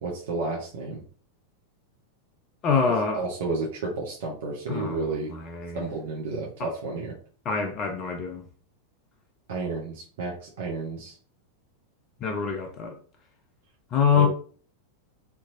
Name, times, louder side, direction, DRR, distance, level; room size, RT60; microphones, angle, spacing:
voice 1, 0.0-1.0 3.1-5.3 5.7-7.1 9.5-11.2 14.1-14.3, right 3 dB, 55° right, 1.0 m, -31 dB
voice 2, 2.6-3.2 4.7-5.8 6.6-6.7 7.5-8.5 12.2-13.0 13.9-14.3, left 6 dB, 35° left, 0.6 m, -25 dB
4.5 x 2.9 x 2.6 m
figure-of-eight pair, 90°, 0 cm